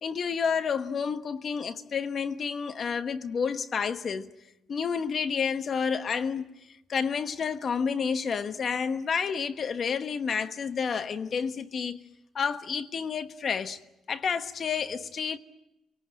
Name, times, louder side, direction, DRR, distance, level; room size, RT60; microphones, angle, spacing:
voice 1, 0.0-4.3 4.7-6.4 6.9-12.0 12.3-13.8 14.1-15.4, left 6 dB, 50° left, 1.2 m, -30 dB
28.0 x 18.5 x 9.0 m
cardioid pair, 90°, 0 cm